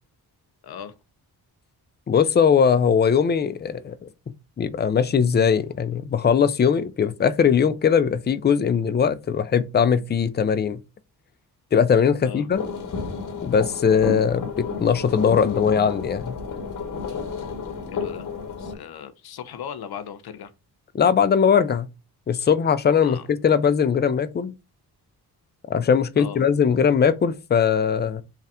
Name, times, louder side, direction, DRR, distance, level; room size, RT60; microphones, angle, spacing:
voice 1, 0.6-0.9 12.2-12.5 17.9-18.3 18.6-20.5 23.0-23.3 26.2-26.4, left 8 dB, 70° left, 0.7 m, -37 dB
voice 2, 2.1-4.0 4.6-10.8 11.7-12.6 13.4-16.4 20.9-21.9 22.3-24.5 25.7-28.2, left 7 dB, 25° left, 0.4 m, -20 dB
sound 1, 12.5-18.7, left 4 dB, 55° left, 1.1 m, -31 dB
3.3 x 2.4 x 4.1 m
cardioid pair, 80°, 39 cm